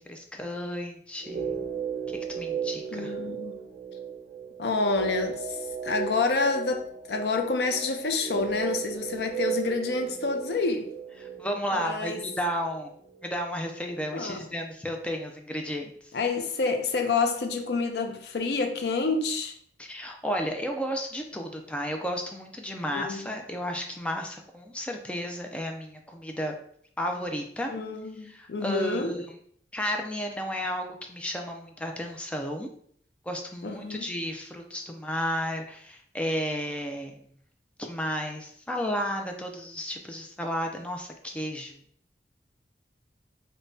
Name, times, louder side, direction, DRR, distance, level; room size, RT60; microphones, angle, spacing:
voice 1, 0.0-1.6 2.3-3.1 11.2-13.0 13.2-16.1 19.8-26.5 27.0-27.7 28.2-29.4 29.7-32.7 33.3-37.1 37.8-41.8, equal, 5° left, 0.4 m, -33 dB
sound 1, 1.2-13.3 13.6-13.7, right 7 dB, 55° right, 0.6 m, -36 dB
voice 2, 2.9-3.6 4.6-10.9 11.7-12.2 14.1-14.4 16.1-19.5 22.9-23.2 27.7-29.2 33.6-34.1, left 4 dB, 70° left, 0.5 m, -28 dB
5.2 x 2.2 x 2.6 m
head